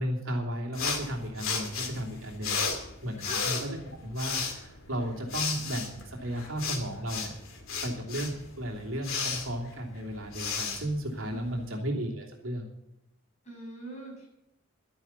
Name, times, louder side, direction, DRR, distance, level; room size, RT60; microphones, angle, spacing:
voice 1, 0.0-7.4 7.8-12.7, equal, 75° right, 0 dB, 3.0 m, -34 dB
sound 1, 0.7-11.7, left 5 dB, 85° left, 2.4 m, -35 dB
voice 2, 11.3-11.7 13.4-14.3, right 2 dB, 35° left, -2 dB, 6.9 m, -42 dB
12.0 x 10.5 x 7.2 m, 0.85 s
head